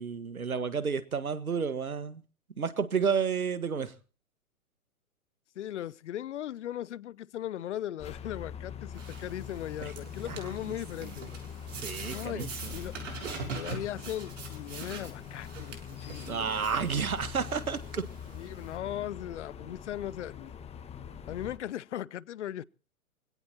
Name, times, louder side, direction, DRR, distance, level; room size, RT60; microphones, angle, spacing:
voice 1, 0.0-2.2 2.6-3.9 9.8-9.9 10.2-10.8 11.0-11.1 11.7-12.7 16.3-18.0, right 6 dB, 80° right, 1.6 m, -31 dB
voice 2, 5.6-11.3 12.1-12.9 13.5-16.7 18.3-20.5 21.3-22.6, left 11 dB, 55° left, 0.7 m, -38 dB
sound 1, 8.0-21.6, left 8 dB, 15° left, 1.5 m, -43 dB
sound 2, 8.9-18.8, right 5 dB, 60° right, 6.6 m, -44 dB
25.5 x 17.0 x 2.9 m
figure-of-eight pair, 115°, 42 cm